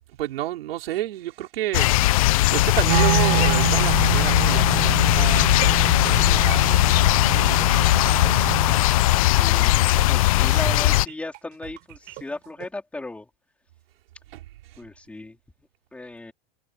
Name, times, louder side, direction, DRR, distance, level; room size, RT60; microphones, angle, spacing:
voice 1, 0.2-1.9 2.5-5.6 6.0-8.7 14.3-14.4, right 14 dB, 75° right, 4.9 m, -31 dB
sound 1, 1.7-11.1, left 17 dB, 35° left, 0.4 m, -19 dB
Wind instrument woodwind instrument, 2.8-8.9, right 17 dB, 55° right, 7.0 m, -27 dB
sound 2, 4.0-12.7, right 21 dB, 30° right, 5.0 m, -38 dB
voice 2, 9.3-9.8 10.1-13.3 14.8-15.4 15.9-16.3, left 2 dB, 5° left, 3.7 m, -36 dB
supercardioid pair, 180°, 30 cm